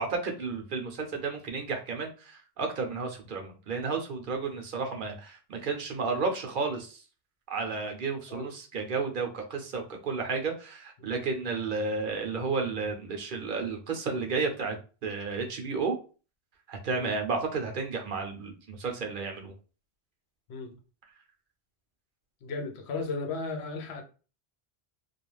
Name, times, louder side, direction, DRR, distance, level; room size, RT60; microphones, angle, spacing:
voice 1, 0.0-7.0 7.5-14.8 15.0-16.0 16.7-19.5, right 4 dB, 60° right, 0.7 m, -32 dB
voice 2, 22.4-24.0, left 3 dB, 85° left, 0.9 m, -35 dB
2.4 x 2.3 x 3.0 m
omnidirectional pair, 1.1 m